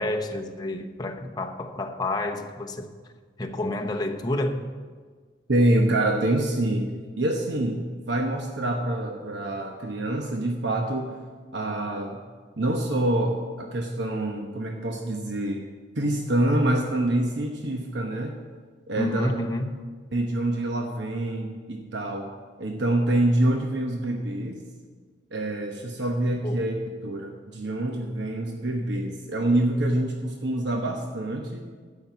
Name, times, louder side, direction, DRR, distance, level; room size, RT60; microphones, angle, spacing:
voice 1, 0.0-2.9 3.4-4.7 19.0-19.8 26.4-26.6, left 1 dB, 20° left, 3 dB, 0.8 m, -29 dB
voice 2, 5.5-6.9 7.2-11.1 11.5-12.2 12.6-15.7 16.0-18.3 18.9-19.3 20.1-22.3 22.6-24.6 25.3-26.8 27.0-31.6, right 1 dB, 70° right, 2 dB, 1.0 m, -26 dB
12.0 x 5.6 x 8.1 m, 1.5 s
head